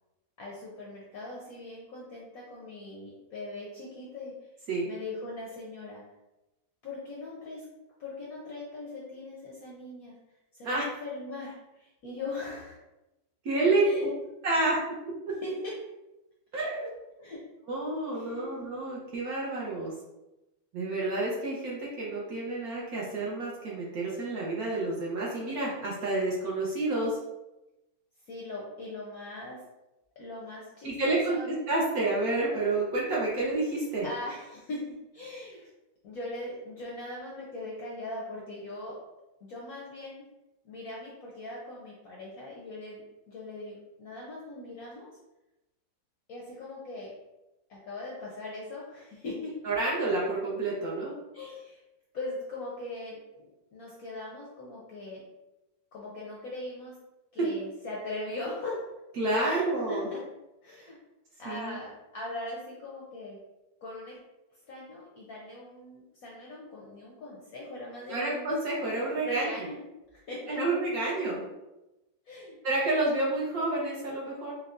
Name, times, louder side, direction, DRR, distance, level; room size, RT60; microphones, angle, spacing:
voice 1, 0.4-4.4 4.8-6.0 6.8-7.7 8.0-10.2 10.5-12.8 13.8-14.1 15.4-15.9 17.2-17.5 18.1-18.6 28.3-29.7 30.2-31.5 34.0-35.7 36.0-39.0 39.4-40.3 40.6-45.2 46.3-47.2 47.7-49.6 51.3-51.8 52.1-55.2 55.9-57.0 57.3-59.0 59.4-60.2 60.6-61.0 61.4-63.4 63.8-64.2 64.7-68.5 69.2-70.6 72.3-72.6, left 2 dB, 70° left, -4 dB, 0.8 m, -40 dB
voice 2, 13.4-14.1 14.4-14.8 16.5-16.9 17.7-19.9 20.7-27.2 30.8-34.1 49.6-51.1 59.2-60.1 61.4-61.8 68.1-69.5 70.5-71.4 72.6-74.5, right 2 dB, 65° right, -5 dB, 1.0 m, -29 dB
5.0 x 2.2 x 2.4 m, 0.98 s
omnidirectional pair, 2.1 m